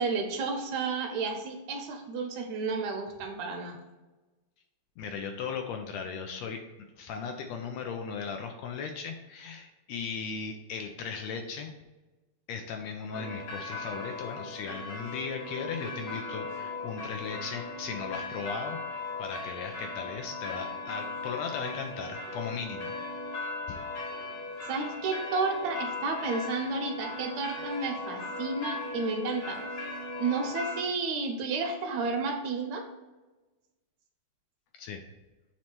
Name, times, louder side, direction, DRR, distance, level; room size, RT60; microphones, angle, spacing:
voice 1, 0.0-3.8 24.7-29.6 30.2-32.8, right 4 dB, 75° right, 3 dB, 2.0 m, -31 dB
voice 2, 5.0-6.6 7.0-11.7 12.5-18.8 19.2-22.9 23.7-23.8 34.7-35.0, left 5 dB, 75° left, 4 dB, 1.6 m, -37 dB
sound 1, 13.1-30.8, left 3 dB, 55° left, 1.5 m, -38 dB
7.2 x 3.2 x 4.4 m, 1.2 s
omnidirectional pair, 3.4 m